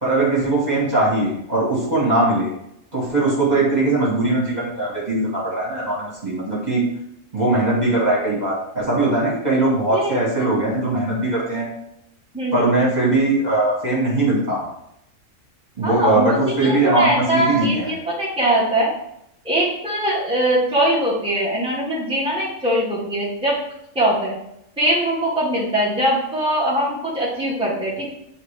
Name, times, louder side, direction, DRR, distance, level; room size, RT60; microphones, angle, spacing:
voice 1, 0.0-2.5 2.9-6.8 7.3-11.7 12.5-14.6 15.8-17.9, right 2 dB, 35° right, -6 dB, 2.0 m, -20 dB
voice 2, 9.9-10.6 12.3-12.7 15.8-18.9 19.4-23.6 23.9-24.3 24.8-28.1, right 1 dB, 5° right, -7 dB, 1.7 m, -21 dB
9.2 x 3.3 x 3.3 m, 0.79 s
omnidirectional pair, 1.3 m